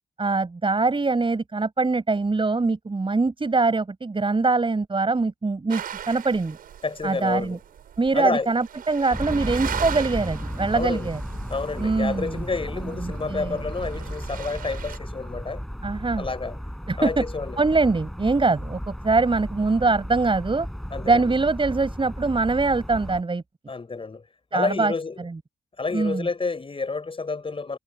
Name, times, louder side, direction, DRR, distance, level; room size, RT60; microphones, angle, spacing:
voice 1, 0.2-6.6 7.0-7.6 8.0-11.2 11.8-12.4 13.0-13.6 15.8-16.3 16.9-17.2 17.6-20.7 21.0-23.4 24.5-24.9 25.9-26.3, right 3 dB, 35° right, 7.5 m, -23 dB
sound 1, 5.7-15.0, right 9 dB, 80° right, 7.6 m, -38 dB
voice 2, 6.8-7.6 8.1-8.5 10.7-11.1 11.5-15.6 16.2-16.6 17.0-17.6 20.9-21.3 23.7-24.2 24.5-25.2 25.8-27.8, left 4 dB, 40° left, 5.0 m, -29 dB
sound 2, 9.1-23.2, equal, ahead, 6.2 m, -34 dB
supercardioid pair, 50°, 15 cm